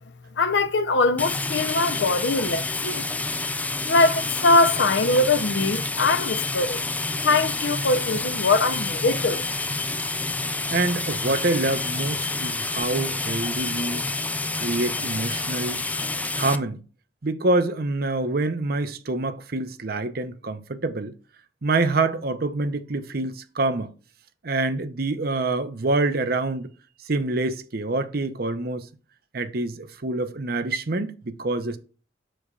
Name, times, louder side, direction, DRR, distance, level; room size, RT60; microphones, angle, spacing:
voice 1, 0.4-3.0 3.9-6.8 7.2-9.5, left 3 dB, 75° left, 0.7 m, -22 dB
sound 1, 1.2-16.6, left 3 dB, 10° left, 0.3 m, -28 dB
voice 2, 10.7-14.1 14.6-15.8 16.3-16.8 17.2-21.1 21.6-23.9 24.4-26.7 27.1-28.9 29.3-31.8, right 2 dB, 55° right, 0.8 m, -26 dB
7.8 x 6.6 x 2.4 m
head